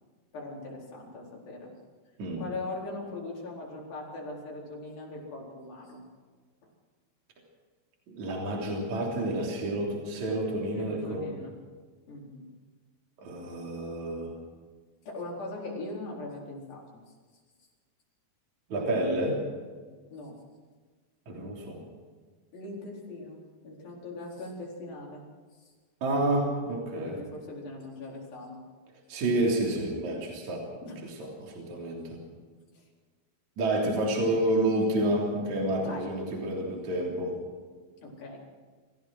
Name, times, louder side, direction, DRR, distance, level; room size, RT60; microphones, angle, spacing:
voice 1, 0.3-1.7 2.4-6.0 10.7-11.5 12.1-12.5 15.1-17.0 20.1-20.4 22.5-25.2 25.5-25.7 27.0-28.6 30.8-31.0 32.7-32.8 35.8-36.1 38.0-38.4, left 2 dB, 75° left, -2 dB, 6.0 m, -40 dB
voice 2, 8.1-11.2 13.2-14.3 18.7-19.4 21.3-21.8 26.0-27.2 29.1-30.7 31.0-32.2 33.6-37.4, right 1 dB, 50° right, -1 dB, 4.6 m, -29 dB
27.0 x 15.5 x 6.3 m, 1.5 s
omnidirectional pair, 4.2 m